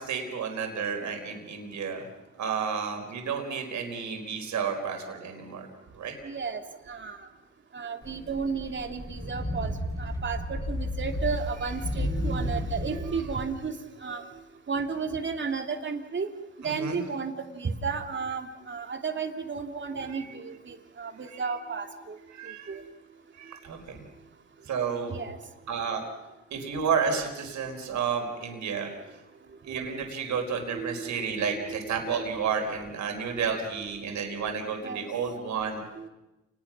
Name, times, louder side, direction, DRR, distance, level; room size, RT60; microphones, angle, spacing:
voice 1, 0.0-2.1 2.4-5.7 5.9-6.1 11.7-11.8 12.9-13.3 16.6-17.0 20.1-20.3 21.3-21.5 22.3-22.8 23.4-24.0 24.7-25.2 25.7-26.0 26.5-28.9 29.6-35.8, right 6 dB, 70° right, 3 dB, 4.6 m, -31 dB
voice 2, 6.2-6.6 6.9-7.2 7.7-9.7 10.0-13.8 14.0-14.3 14.7-16.3 16.6-22.2 22.4-22.8 25.1-25.4 28.8-28.9 30.7-31.1 31.3-32.3 34.8-35.1 35.7-36.1, right 5 dB, 40° right, 5 dB, 2.8 m, -33 dB
sound 1, 8.0-13.4, left 1 dB, 10° left, 6.9 m, -32 dB
29.5 x 20.0 x 6.1 m, 1.0 s
cardioid pair, 90°, 30 cm